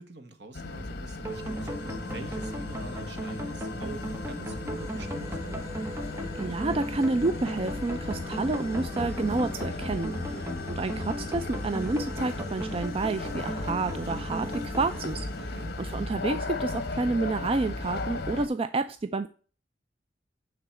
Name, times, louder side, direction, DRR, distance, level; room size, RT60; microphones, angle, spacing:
voice 1, 0.0-5.6 10.3-10.5 15.4-15.8, right 2 dB, 65° right, 1.4 m, -45 dB
sound 1, 0.5-18.5, left 2 dB, 60° left, 1.1 m, -36 dB
sound 2, 1.2-16.3, equal, 15° right, 1.2 m, -37 dB
voice 2, 6.3-10.4 10.7-19.3, right 3 dB, 30° right, 0.4 m, -29 dB
9.2 x 4.0 x 6.7 m
head